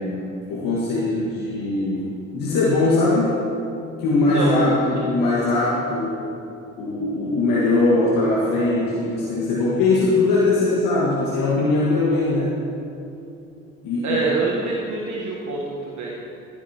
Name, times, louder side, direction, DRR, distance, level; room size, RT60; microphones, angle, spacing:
voice 1, 0.0-3.4 4.0-6.2 6.8-12.5 13.8-14.3, left 2 dB, 60° left, -6 dB, 1.8 m, -21 dB
voice 2, 4.1-5.0 14.0-16.4, right 3 dB, 50° right, -3 dB, 1.3 m, -26 dB
13.5 x 9.7 x 2.9 m, 2.7 s
hypercardioid pair, 50°, 38 cm